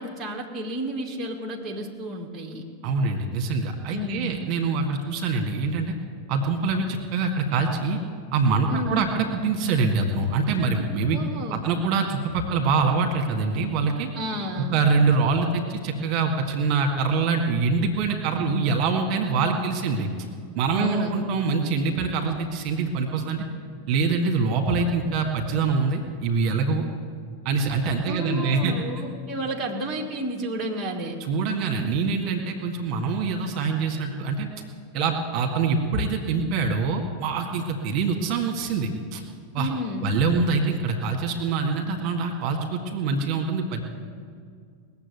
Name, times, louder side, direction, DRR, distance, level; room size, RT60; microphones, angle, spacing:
voice 1, 0.0-2.7 3.9-4.4 8.7-9.1 11.1-11.7 14.1-14.7 20.7-21.2 28.1-31.2 39.6-40.1, equal, 15° right, -1 dB, 1.7 m, -31 dB
voice 2, 2.8-6.0 6.3-8.0 8.3-11.2 11.5-14.1 14.7-20.1 20.6-23.5 23.9-26.8 27.5-28.7 31.3-34.5 34.9-39.2 39.5-39.7 40.0-43.8, right 4 dB, 40° right, 2 dB, 1.9 m, -24 dB
20.0 x 7.4 x 8.3 m, 2.1 s
figure-of-eight pair, 90°, 0 cm